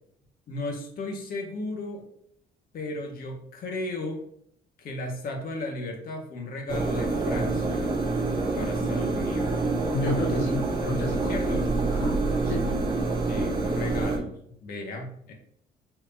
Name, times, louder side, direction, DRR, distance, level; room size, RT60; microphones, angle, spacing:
voice 1, 0.5-2.1 2.7-4.3 4.8-7.9 8.5-9.6 11.3-11.7 13.3-15.3, left 2 dB, 60° left, 2 dB, 1.9 m, -35 dB
sound 1, 6.7-14.2, right 3 dB, 30° right, 2.8 m, -26 dB
voice 2, 9.9-11.4 11.9-12.7, left 2 dB, 85° left, -2 dB, 1.2 m, -31 dB
8.6 x 5.0 x 2.8 m, 0.69 s
cardioid pair, 110°, 17 cm